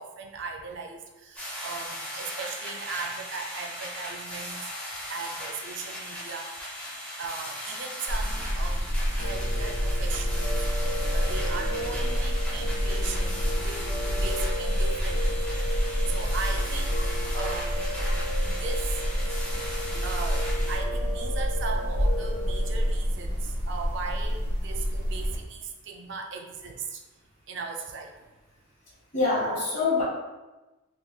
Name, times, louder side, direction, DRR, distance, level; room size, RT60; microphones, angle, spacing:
voice 1, 0.0-4.7 5.1-6.5 7.2-8.8 9.2-10.5 11.1-13.8 14.1-15.3 16.1-19.0 20.0-27.0 27.5-28.1, right 5 dB, 55° right, 2 dB, 0.4 m, -38 dB
sound 1, 1.4-20.8, equal, 5° left, 0.7 m, -38 dB
sound 2, 8.1-25.4, equal, 85° right, 1.0 m, -28 dB
Piano, 9.2-22.9, equal, 80° left, 0.3 m, -36 dB
voice 2, 10.5-12.0 16.9-17.0 18.1-18.2 29.1-30.0, left 3 dB, 40° left, -7 dB, 1.2 m, -29 dB
3.4 x 3.0 x 2.2 m, 1.1 s
head